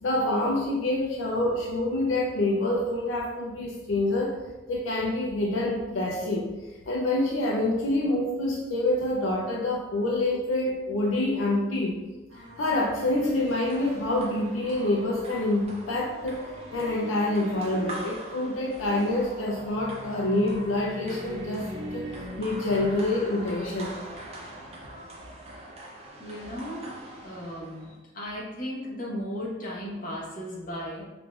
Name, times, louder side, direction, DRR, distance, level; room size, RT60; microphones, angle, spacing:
voice 1, 0.0-4.4 4.7-6.5 6.9-12.0 12.6-16.5 16.7-23.9, left 1 dB, 80° left, -2 dB, 0.5 m, -27 dB
sound 1, 12.3-24.2, equal, 80° right, 0.9 m, -43 dB
sound 2, 13.1-28.0, right 1 dB, 30° right, 0.5 m, -44 dB
voice 2, 26.2-26.9 27.2-27.9 28.1-31.0, equal, 45° left, -5 dB, 1.0 m, -35 dB
4.8 x 2.5 x 2.3 m, 1.1 s
head